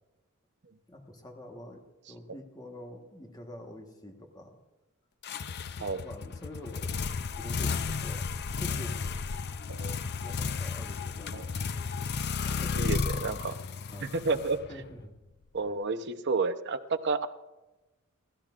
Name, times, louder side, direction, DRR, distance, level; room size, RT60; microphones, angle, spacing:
voice 1, 0.9-4.6 5.7-6.9 7.4-8.3 8.6-9.2 10.2-11.5 12.5-12.9 13.4-13.6 13.9-14.1 14.7-15.1 15.6-15.7, left 1 dB, 20° left, 3 dB, 1.3 m, -46 dB
sound 1, 5.2-15.0, left 5 dB, 50° left, 0.5 m, -33 dB
voice 2, 12.8-13.6 14.2-14.6 15.5-17.3, right 4 dB, 55° right, 9 dB, 0.8 m, -30 dB
28.5 x 13.0 x 2.5 m, 1.1 s
head